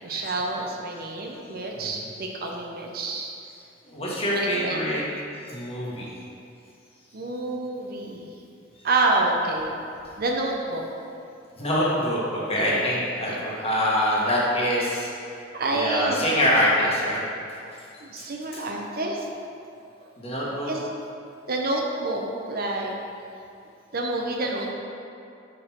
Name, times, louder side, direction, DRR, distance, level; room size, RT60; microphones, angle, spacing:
voice 1, 0.0-3.3 4.3-4.9 7.1-8.3 8.8-9.7 10.2-10.8 12.6-13.4 15.5-16.3 18.0-19.3 20.6-20.8 21.5-22.9 23.9-24.7, right 2 dB, 50° right, 0 dB, 0.6 m, -28 dB
voice 2, 1.7-2.2 3.8-5.0 5.5-6.1 11.6-15.1 15.6-17.2 18.5-18.6 20.2-20.7, equal, 30° left, -6 dB, 1.3 m, -25 dB
5.0 x 4.5 x 5.6 m, 2.6 s
head